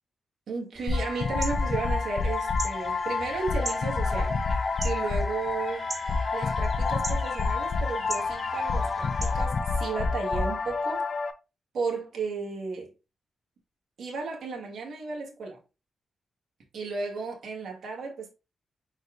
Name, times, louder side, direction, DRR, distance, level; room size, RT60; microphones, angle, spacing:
voice 1, 0.5-4.3 4.8-5.9 6.3-11.0 11.7-12.9 14.0-15.6 16.7-18.3, right 4 dB, 75° right, 1.4 m, -34 dB
sound 1, 0.7-9.5, right 2 dB, 45° right, 2.3 m, -40 dB
sound 2, 0.9-11.3, left 4 dB, 55° left, 0.6 m, -28 dB
4.8 x 4.1 x 2.4 m
cardioid pair, 65°, 0 cm